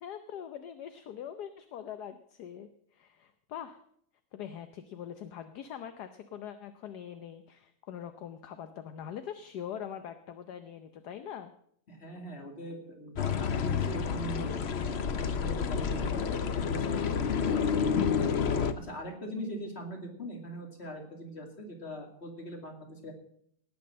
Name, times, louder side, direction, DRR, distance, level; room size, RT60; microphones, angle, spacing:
voice 1, 0.0-3.8 4.3-11.5, left 9 dB, 70° left, 9 dB, 1.3 m, -43 dB
voice 2, 11.9-17.7 18.8-23.1, right 1 dB, 35° left, 2 dB, 2.7 m, -41 dB
sound 1, 13.2-18.7, left 6 dB, 50° left, 0.8 m, -29 dB
18.0 x 6.1 x 7.5 m, 0.68 s
omnidirectional pair, 1.9 m